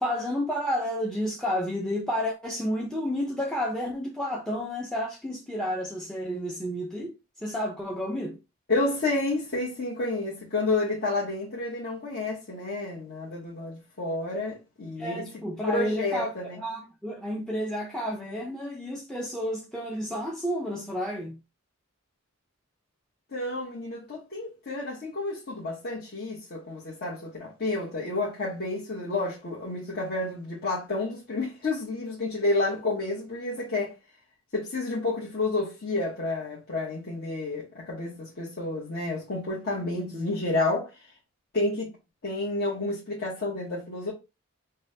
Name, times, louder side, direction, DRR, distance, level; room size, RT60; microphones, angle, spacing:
voice 1, 0.0-7.1 7.4-8.4 15.0-21.4 40.0-40.3, equal, 5° left, 0.5 m, -31 dB
voice 2, 8.7-15.2 15.7-16.6 23.3-33.9 34.5-40.9 41.5-41.9 42.2-44.1, left 2 dB, 50° left, 1.1 m, -30 dB
5.4 x 2.2 x 2.7 m
head